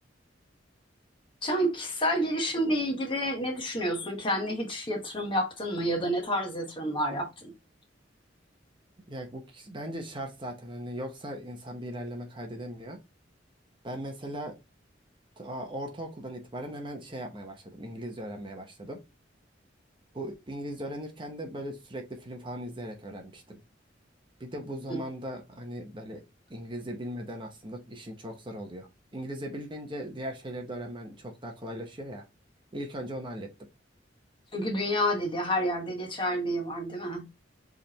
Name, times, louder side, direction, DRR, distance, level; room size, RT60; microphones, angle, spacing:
voice 1, 1.4-7.5 24.9-25.0 34.5-37.2, equal, 25° left, 1.1 m, -29 dB
voice 2, 9.1-13.0 13.8-14.6 15.4-19.0 20.1-23.6 24.4-26.2 26.5-32.2 32.7-33.5, equal, 25° right, 0.8 m, -38 dB
4.8 x 3.4 x 2.8 m
head